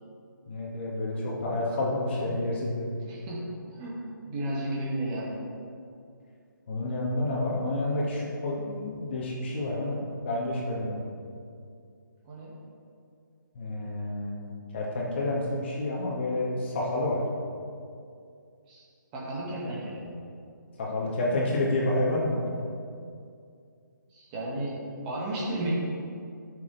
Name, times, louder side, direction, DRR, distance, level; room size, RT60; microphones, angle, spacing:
voice 1, 0.5-2.9 6.7-11.0 13.5-17.2 20.8-22.4, left 2 dB, 30° left, -4 dB, 2.1 m, -29 dB
voice 2, 3.1-5.3 12.2-12.6 18.7-18.8 19.1-20.1 24.1-25.8, right 1 dB, 20° right, -5 dB, 2.0 m, -33 dB
15.5 x 7.0 x 3.5 m, 2.4 s
hypercardioid pair, 165°, 11 cm